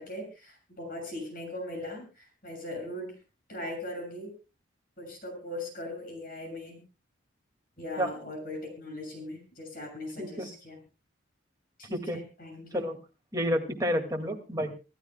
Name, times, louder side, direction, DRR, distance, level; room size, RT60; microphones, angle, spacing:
voice 1, 0.0-3.1 3.5-4.3 5.0-6.8 7.8-10.8 11.8-12.9, left 1 dB, 45° left, 3 dB, 6.8 m, -39 dB
voice 2, 10.2-10.5 11.9-12.2 12.7-13.0 13.3-14.7, equal, 15° right, 2 dB, 2.1 m, -30 dB
26.5 x 13.0 x 2.2 m, 0.32 s
head